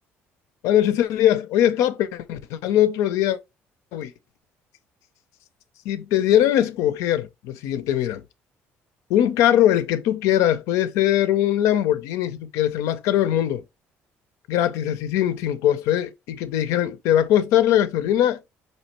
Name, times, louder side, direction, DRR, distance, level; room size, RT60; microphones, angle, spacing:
voice 1, 0.6-3.4 3.9-4.1 5.8-8.2 9.1-13.6 14.5-18.5, left 11 dB, 85° left, 0.5 m, -21 dB
4.3 x 2.7 x 2.9 m
cardioid pair, 105°, 5 cm